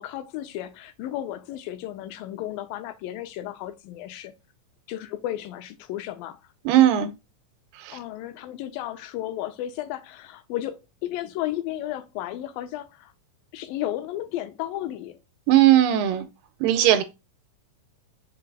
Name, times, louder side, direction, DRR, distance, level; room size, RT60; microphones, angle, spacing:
voice 1, 0.0-4.3 4.9-6.4 7.9-13.1 13.5-15.2 16.8-17.0, left 13 dB, 90° left, 2.4 m, -33 dB
voice 2, 6.7-7.1 7.8-8.0 15.5-16.3 16.6-17.0, right 12 dB, 90° right, 2.4 m, -18 dB
5.5 x 4.0 x 2.3 m
omnidirectional pair, 4.0 m